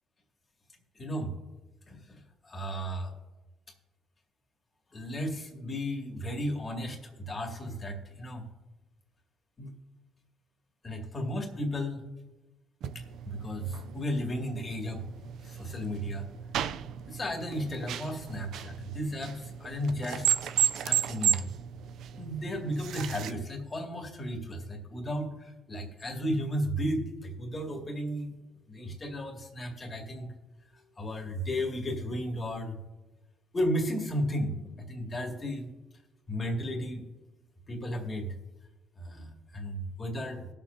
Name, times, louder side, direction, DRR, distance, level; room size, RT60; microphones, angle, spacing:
voice 1, 1.0-1.3 1.9-3.1 4.9-8.5 9.6-9.7 10.8-12.0 12.9-15.0 15.4-16.3 17.1-20.5 20.8-21.5 22.2-28.3 28.7-30.3 30.7-32.8 33.5-35.7 36.3-37.0 37.7-38.4 39.0-40.5, equal, 30° left, 1 dB, 2.3 m, -34 dB
sound 1, 12.8-23.3, right 10 dB, 70° right, 0.4 m, -34 dB
18.5 x 7.2 x 2.8 m, 1.1 s
cardioid pair, 90°, 0 cm